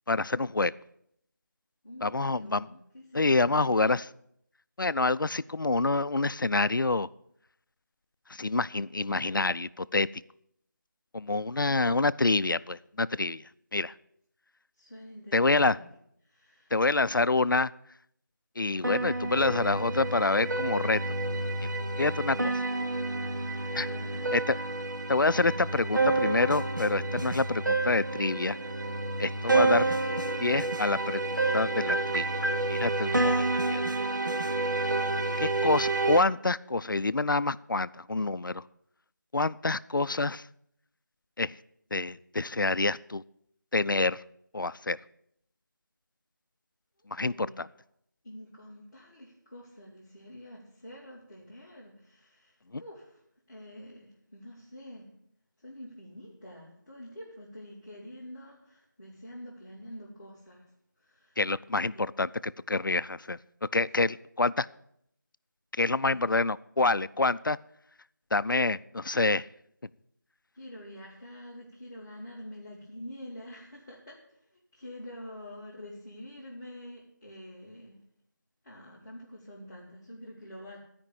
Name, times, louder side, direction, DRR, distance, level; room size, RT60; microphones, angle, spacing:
voice 1, 0.1-0.7 2.0-2.7 3.1-4.0 4.8-7.1 8.3-10.1 11.1-13.4 13.7-13.9 15.3-15.8 16.7-17.7 18.6-21.0 22.0-22.6 23.7-23.9 24.3-24.6 25.1-28.6 29.2-29.9 30.4-32.3 32.7-33.8 35.4-38.6 39.3-40.5 41.4-41.5 41.9-43.2 43.7-44.2 44.5-45.0 47.1-47.7 52.7-52.8 61.4-63.4 63.7-64.7 65.8-67.6 68.3-69.5, left 3 dB, 90° left, 17 dB, 0.4 m, -27 dB
voice 2, 1.8-2.7 2.9-3.8 14.8-15.9 16.2-16.8 22.0-22.6 23.4-24.4 47.0-47.6 48.2-53.2 53.5-55.1 55.6-60.7 61.0-61.4 61.9-62.0 66.0-66.3 70.5-74.2 74.5-78.0 78.6-80.8, left 1 dB, 10° left, -13 dB, 1.8 m, -47 dB
sound 1, 18.8-36.2, right 2 dB, 70° right, 1.2 m, -29 dB
12.5 x 5.3 x 8.6 m, 0.72 s
figure-of-eight pair, 175°, 11 cm